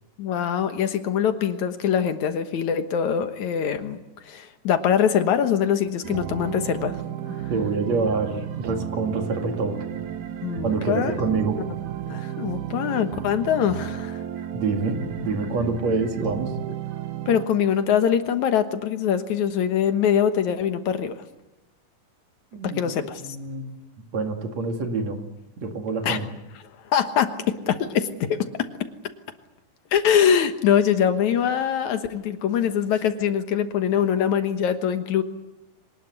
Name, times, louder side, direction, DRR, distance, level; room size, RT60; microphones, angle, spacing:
voice 1, 0.2-7.0 7.4-7.5 10.4-11.1 12.1-14.2 17.3-21.2 22.6-23.2 26.0-26.2 26.9-28.7 29.9-35.2, left 8 dB, 70° left, 9 dB, 2.6 m, -23 dB
sound 1, 6.0-17.5, right 10 dB, 75° right, 2.7 m, -33 dB
voice 2, 7.5-9.8 10.6-11.6 14.5-16.5 22.5-22.8 23.2-23.7 24.1-25.2 25.6-26.3, right 4 dB, 60° right, 4 dB, 3.4 m, -26 dB
24.5 x 19.5 x 9.6 m, 0.97 s
omnidirectional pair, 3.6 m